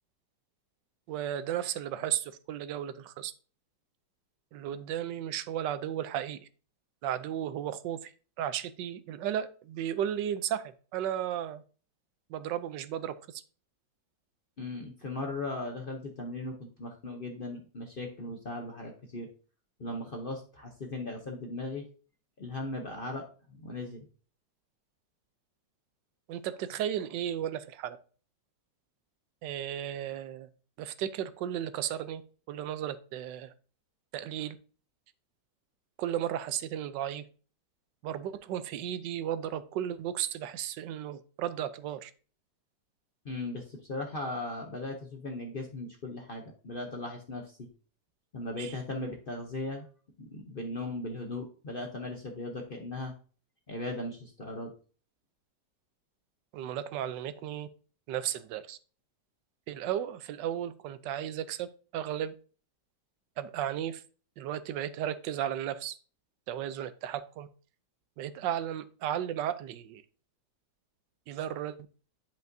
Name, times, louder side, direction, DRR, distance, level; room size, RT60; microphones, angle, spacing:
voice 1, 1.1-3.3 4.5-6.5 7.0-8.1 8.4-10.6 10.9-11.6 12.3-13.4 26.3-28.0 29.4-30.5 30.8-32.2 32.5-33.5 34.1-34.6 36.0-37.2 38.0-42.1 48.6-48.8 56.5-57.7 58.1-58.8 59.7-62.3 63.4-64.0 64.4-65.9 66.5-67.5 68.2-70.0 71.3-71.8, right 10 dB, 80° right, 13 dB, 1.2 m, -34 dB
voice 2, 14.6-19.3 19.8-21.9 22.4-24.1 43.2-47.7 48.3-49.9 50.2-53.1 53.7-54.7, left 2 dB, 45° left, 2 dB, 0.7 m, -38 dB
10.5 x 5.3 x 2.6 m, 0.39 s
omnidirectional pair, 1.9 m